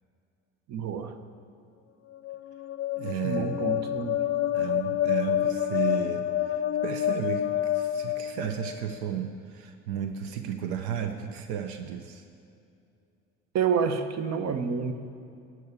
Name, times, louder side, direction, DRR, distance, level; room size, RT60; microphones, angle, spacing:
voice 1, 0.7-1.2 3.2-4.2 13.5-14.9, right 6 dB, 50° right, 9 dB, 1.0 m, -28 dB
sound 1, 2.1-9.0, left 12 dB, 40° left, 0.6 m, -28 dB
voice 2, 3.0-4.0 4.5-12.2, right 9 dB, 80° right, 7 dB, 0.8 m, -34 dB
12.0 x 6.3 x 8.3 m, 2.5 s
supercardioid pair, 70°, 34 cm